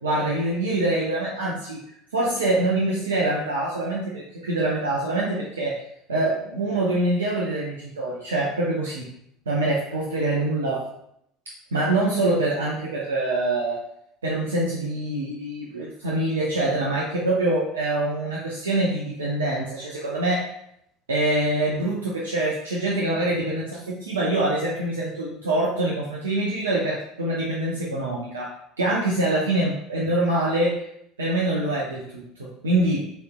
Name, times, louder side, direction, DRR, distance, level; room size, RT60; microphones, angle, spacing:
voice 1, 0.0-1.8 2.1-5.8 6.1-9.1 9.5-10.8 11.7-13.8 14.2-20.5 21.1-30.8 31.2-33.1, right 2 dB, 80° right, -4 dB, 0.6 m, -25 dB
6.4 x 3.1 x 2.2 m, 0.74 s
figure-of-eight pair, 70°, 0 cm